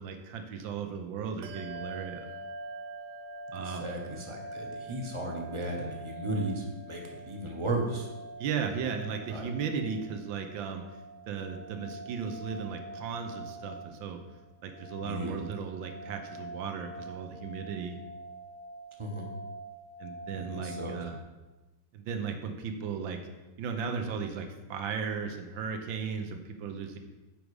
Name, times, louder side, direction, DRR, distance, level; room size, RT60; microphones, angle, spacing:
voice 1, 0.0-2.3 3.5-3.9 8.4-10.8 11.3-14.2 14.6-18.0 20.0-21.2 21.9-23.2 23.6-27.0, right 6 dB, 85° right, 6 dB, 1.6 m, -36 dB
Bell, 1.4-11.4, right 1 dB, 70° right, 0.8 m, -50 dB
sound 1, 1.6-21.2, right 2 dB, 65° left, 1.1 m, -45 dB
voice 2, 3.6-8.1 9.3-9.5 15.0-15.4 19.0-19.3 20.3-21.0, right 1 dB, 25° right, 0 dB, 0.7 m, -35 dB
7.5 x 5.2 x 4.8 m, 1.1 s
omnidirectional pair, 2.0 m